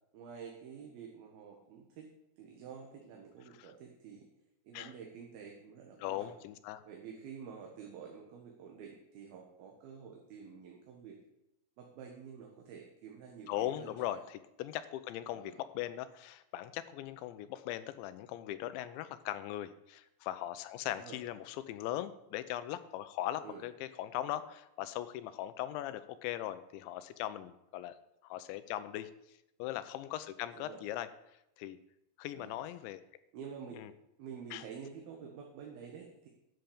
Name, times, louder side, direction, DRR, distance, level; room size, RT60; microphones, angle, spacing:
voice 1, 0.1-2.1 2.4-4.3 4.6-6.3 6.9-11.2 11.8-14.2 15.3-15.6 20.9-21.2 23.4-23.6 30.5-30.8 32.3-32.6 33.3-33.8 34.2-36.3, right 7 dB, 65° right, 0 dB, 3.0 m, -49 dB
voice 2, 6.0-6.8 13.5-28.0 28.2-29.1 29.6-31.1 31.6-31.8 32.2-33.0 33.7-33.9 34.5-34.6, left 13 dB, 90° left, 12 dB, 3.0 m, -39 dB
11.5 x 7.0 x 8.6 m, 0.85 s
omnidirectional pair, 5.1 m